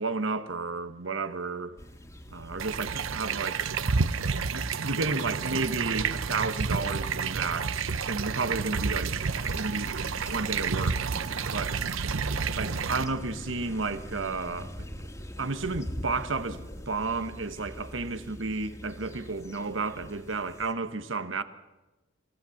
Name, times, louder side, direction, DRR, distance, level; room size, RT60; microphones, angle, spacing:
voice 1, 0.0-1.8 2.3-3.6 4.5-9.1 9.5-9.9 10.3-11.8 12.6-14.7 15.4-21.4, right 3 dB, 70° right, 1.3 m, -32 dB
sound 1, 1.8-20.7, equal, 15° left, 2.1 m, -44 dB
sound 2, 2.6-13.0, right 5 dB, 90° right, 0.8 m, -30 dB
28.5 x 17.0 x 7.2 m
head